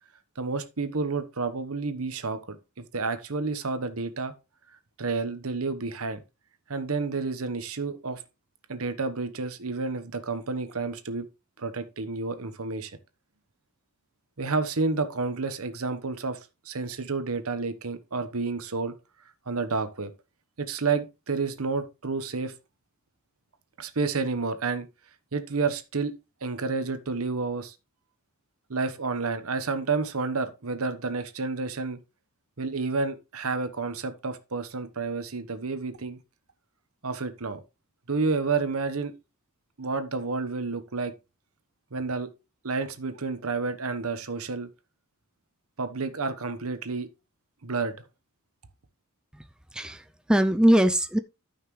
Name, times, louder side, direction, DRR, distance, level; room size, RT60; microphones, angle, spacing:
voice 1, 0.4-4.3 5.0-6.2 6.7-8.2 8.7-11.2 11.6-12.9 14.4-16.4 16.6-18.9 19.5-20.1 20.6-22.5 23.8-24.9 25.3-26.1 26.4-27.7 28.7-32.0 32.6-36.2 37.0-37.6 38.1-39.1 39.8-41.1 41.9-42.3 42.6-44.7 45.8-47.1 47.6-48.0, right 4 dB, 70° right, 1.1 m, -30 dB
voice 2, 49.7-51.2, equal, 5° right, 0.4 m, -22 dB
13.0 x 5.8 x 3.2 m
head